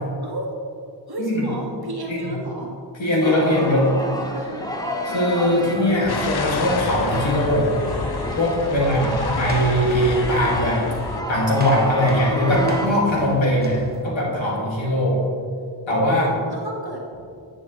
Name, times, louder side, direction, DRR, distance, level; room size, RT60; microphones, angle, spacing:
voice 1, 0.2-0.6 1.1-2.7 3.2-4.7 8.7-9.4 16.1-17.0, right 1 dB, 55° right, -2 dB, 1.8 m, -33 dB
voice 2, 3.0-3.8 5.1-7.7 8.4-10.8 11.3-15.2 15.9-16.3, equal, 90° left, -4 dB, 2.4 m, -20 dB
sound 1, 3.2-12.9, equal, 10° left, 1.0 m, -30 dB
sound 2, 5.7-7.9 8.3-8.5 8.9-9.1 9.4-14.0, right 1 dB, 20° right, 1.1 m, -36 dB
sound 3, 6.1-11.2, left 4 dB, 60° left, 0.7 m, -29 dB
10.0 x 9.3 x 3.3 m, 2.3 s
wide cardioid pair, 80°, 45 cm